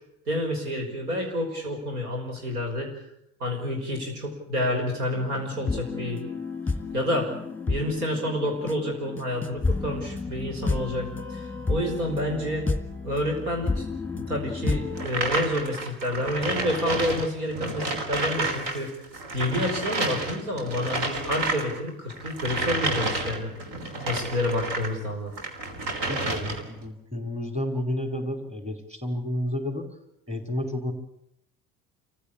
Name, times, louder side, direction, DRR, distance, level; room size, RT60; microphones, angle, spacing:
voice 1, 0.3-2.9 3.4-6.2 6.9-7.3 7.7-12.6 13.0-13.8 14.1-18.9 19.3-23.5 24.1-25.3, left 1 dB, 80° right, 2 dB, 5.5 m, -29 dB
sound 1, 5.1-15.1, left 3 dB, 5° left, 1.8 m, -31 dB
sound 2, 15.0-18.8 19.0-24.9 25.3-26.8, right 2 dB, 60° right, 3.4 m, -30 dB
voice 2, 26.0-29.9 30.3-30.9, left 1 dB, 15° right, 5 dB, 5.0 m, -31 dB
26.5 x 15.5 x 8.6 m, 0.78 s
hypercardioid pair, 60°, 44 cm